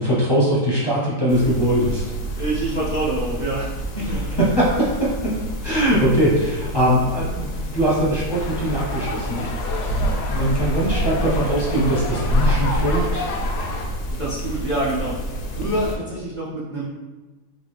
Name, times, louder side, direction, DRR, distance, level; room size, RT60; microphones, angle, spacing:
voice 1, 0.0-2.0 4.6-5.3 5.6-9.5 9.9-13.3, equal, 25° left, -8 dB, 0.5 m, -21 dB
sound 1, 1.3-16.0, equal, 65° left, 0.9 m, -27 dB
voice 2, 2.4-3.7 3.9-4.3 14.1-15.2 15.6-16.9, right 2 dB, 75° right, -8 dB, 0.4 m, -26 dB
sound 2, 8.3-13.9, left 2 dB, 80° left, 1.2 m, -30 dB
3.9 x 2.5 x 3.2 m, 1.2 s
omnidirectional pair, 1.7 m